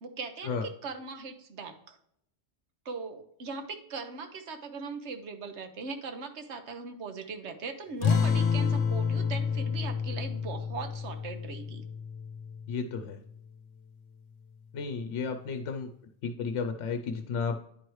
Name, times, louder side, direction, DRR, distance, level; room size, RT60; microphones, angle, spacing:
voice 1, 0.0-2.0 2.8-11.8, right 4 dB, 70° right, 7 dB, 1.2 m, -40 dB
sound 1, 8.0-13.0, left 6 dB, 70° left, 0.9 m, -29 dB
voice 2, 12.7-13.2 14.7-15.9 16.2-17.6, left 5 dB, 90° left, 6 dB, 0.9 m, -33 dB
9.9 x 4.6 x 3.1 m, 0.72 s
omnidirectional pair, 1.2 m